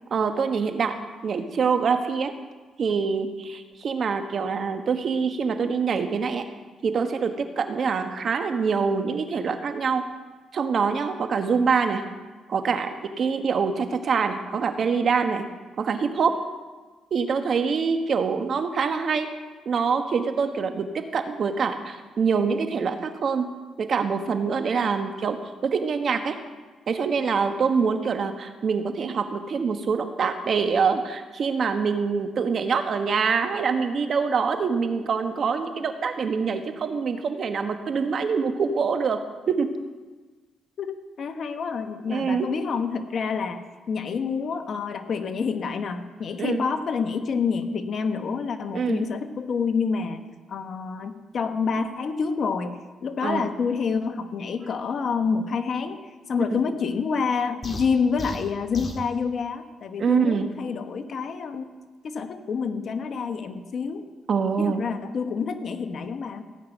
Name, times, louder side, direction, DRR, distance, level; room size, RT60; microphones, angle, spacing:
voice 1, 0.1-0.9 1.2-2.3 2.8-6.5 6.8-10.0 10.5-12.0 12.5-15.5 15.8-16.4 17.1-19.3 19.6-23.5 23.8-25.4 25.6-26.4 26.9-39.2 39.5-39.7 42.1-42.5 46.4-46.6 48.7-49.0 53.2-53.5 56.5-56.6 60.0-60.5 64.3-64.8, right 5 dB, 55° right, 7 dB, 1.3 m, -25 dB
voice 2, 40.8-50.2 50.5-56.0 56.3-61.7 62.0-64.0 64.6-66.4, left 5 dB, 55° left, 7 dB, 1.2 m, -28 dB
sound 1, 57.6-59.1, equal, 30° left, 1.7 m, -35 dB
16.5 x 5.9 x 9.1 m, 1.3 s
cardioid pair, 90°, 0 cm